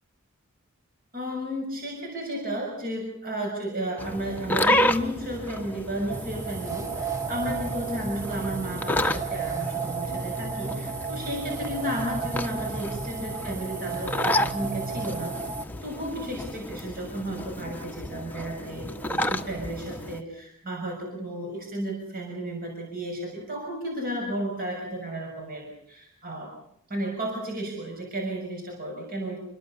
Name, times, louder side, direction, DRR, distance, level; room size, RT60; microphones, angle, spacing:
voice 1, 1.1-15.4 15.8-26.5 26.9-29.4, right 1 dB, 45° right, 0 dB, 6.4 m, -33 dB
sound 1, 4.0-20.2, left 1 dB, 10° left, 1.1 m, -31 dB
sound 2, 6.1-15.6, right 5 dB, 15° right, 1.1 m, -33 dB
29.0 x 22.0 x 7.0 m, 0.70 s
head